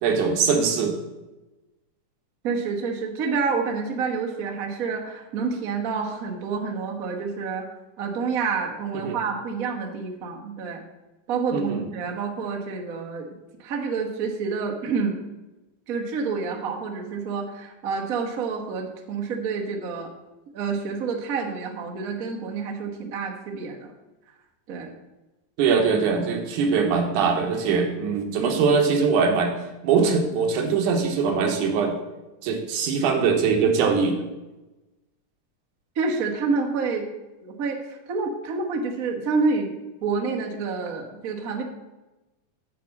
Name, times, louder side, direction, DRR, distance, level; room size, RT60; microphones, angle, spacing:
voice 1, 0.0-1.0 9.0-9.2 11.5-11.9 25.6-29.5 29.8-32.0 32.4-34.2, right 5 dB, 90° right, 3 dB, 2.7 m, -22 dB
voice 2, 2.4-7.7 8.0-10.8 11.3-13.3 13.6-15.2 15.9-20.1 20.5-23.9 24.7-24.9 28.4-28.5 35.9-37.1 37.4-39.7 40.0-41.6, right 4 dB, 65° right, 1 dB, 0.8 m, -28 dB
8.4 x 4.7 x 7.1 m, 1.1 s
omnidirectional pair, 3.4 m